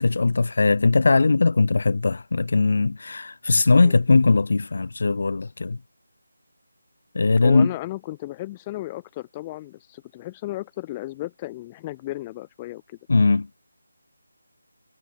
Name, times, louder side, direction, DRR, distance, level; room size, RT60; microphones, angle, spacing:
voice 1, 0.0-5.8 7.1-7.7 13.1-13.5, left 3 dB, 55° left, 3.7 m, -19 dB
voice 2, 7.4-13.0, left 17 dB, 15° left, 5.0 m, -34 dB
figure-of-eight pair, 165°, 0 cm